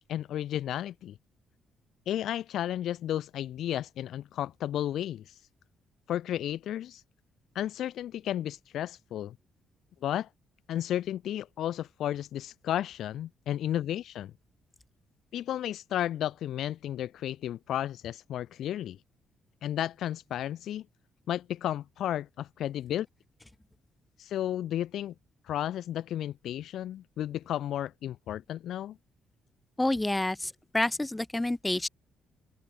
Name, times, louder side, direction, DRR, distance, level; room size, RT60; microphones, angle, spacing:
voice 1, 0.1-1.2 2.1-5.3 6.1-7.0 7.5-9.4 10.0-10.3 10.7-14.3 15.3-19.0 19.6-20.9 21.3-23.1 24.2-25.1 25.5-29.0, left 11 dB, 75° left, 0.6 m, -33 dB
voice 2, 29.8-31.9, left 1 dB, 10° left, 1.1 m, -28 dB
cardioid pair, 90°, 0 cm